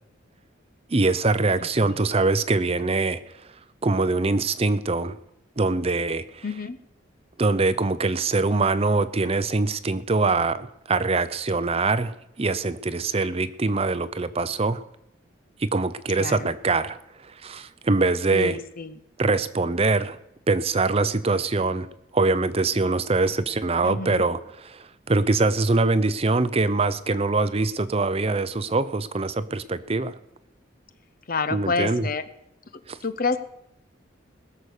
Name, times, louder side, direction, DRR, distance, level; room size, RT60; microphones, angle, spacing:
voice 1, 0.9-3.2 3.8-5.2 5.6-6.4 7.4-14.8 15.6-18.6 19.2-20.2 20.5-21.9 22.1-30.2 31.5-32.1 32.9-33.0, right 3 dB, 30° right, 13 dB, 0.6 m, -23 dB
voice 2, 6.4-6.8 16.2-16.5 18.3-18.9 23.8-24.2 31.3-32.2 33.0-33.4, left 4 dB, 45° left, 12 dB, 0.8 m, -28 dB
20.5 x 6.9 x 6.5 m, 0.80 s
head